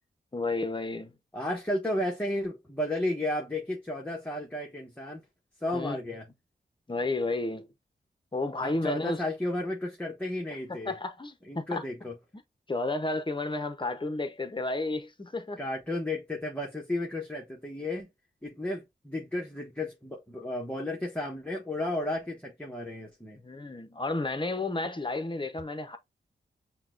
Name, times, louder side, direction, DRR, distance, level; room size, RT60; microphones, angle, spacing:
voice 1, 0.3-1.1 5.7-6.0 6.9-7.7 8.3-9.2 10.8-11.8 12.7-15.6 23.4-26.0, left 2 dB, 25° left, 0.9 m, -32 dB
voice 2, 1.3-5.2 5.6-6.2 8.6-10.9 11.5-12.1 15.6-18.1 18.4-23.4, left 1 dB, 10° left, 1.2 m, -33 dB
5.7 x 2.3 x 2.5 m
cardioid pair, 40°, 19 cm